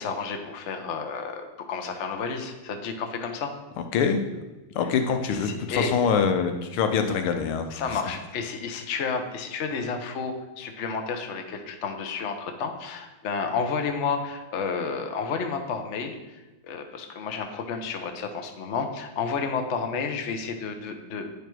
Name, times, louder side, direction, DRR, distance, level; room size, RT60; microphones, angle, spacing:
voice 1, 0.0-3.5 5.3-6.0 7.7-21.4, left 5 dB, 60° left, 5 dB, 0.7 m, -31 dB
voice 2, 3.9-4.2 4.7-7.7, left 6 dB, 80° left, 6 dB, 1.6 m, -24 dB
9.8 x 5.1 x 4.6 m, 1.1 s
omnidirectional pair, 2.4 m